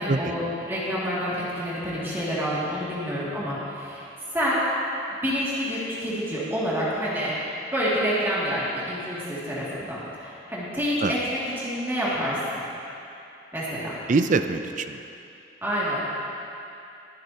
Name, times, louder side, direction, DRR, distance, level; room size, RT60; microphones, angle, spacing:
voice 1, 0.0-4.0 4.3-4.6 5.2-7.3 7.7-12.6 13.5-14.0 15.6-16.0, equal, 15° right, -9 dB, 2.2 m, -28 dB
voice 2, 14.1-15.0, right 3 dB, 45° right, 9 dB, 0.4 m, -23 dB
20.5 x 9.4 x 2.8 m, 2.8 s
head